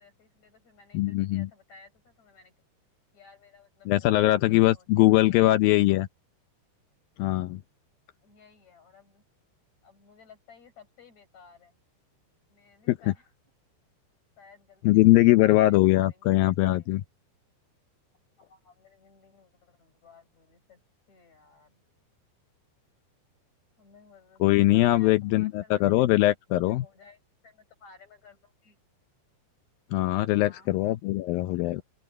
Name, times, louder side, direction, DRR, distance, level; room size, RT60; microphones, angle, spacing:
voice 1, 0.0-2.5 3.1-6.0 8.2-9.2 9.8-11.8 12.5-13.3 14.4-16.9 18.4-20.8 21.1-21.8 23.8-24.4 24.7-28.8 30.3-30.7, left 5 dB, 40° left, 8.2 m, -56 dB
voice 2, 0.9-1.5 3.9-6.1 7.2-7.6 12.9-13.0 14.8-17.0 24.4-26.8 29.9-31.8, left 17 dB, 80° left, 2.1 m, -21 dB
open air
omnidirectional pair, 4.8 m